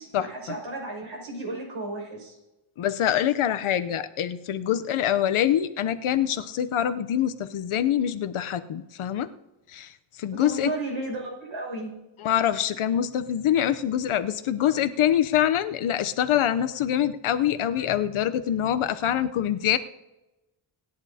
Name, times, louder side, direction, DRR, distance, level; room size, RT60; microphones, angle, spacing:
voice 1, 0.0-2.4 10.3-11.9, right 2 dB, 70° right, -1 dB, 6.0 m, -34 dB
voice 2, 2.8-9.3 9.7-9.9 10.2-10.7 12.2-19.8, left 10 dB, 75° left, 11 dB, 0.8 m, -25 dB
25.5 x 10.5 x 2.8 m, 1.0 s
cardioid pair, 75°, 49 cm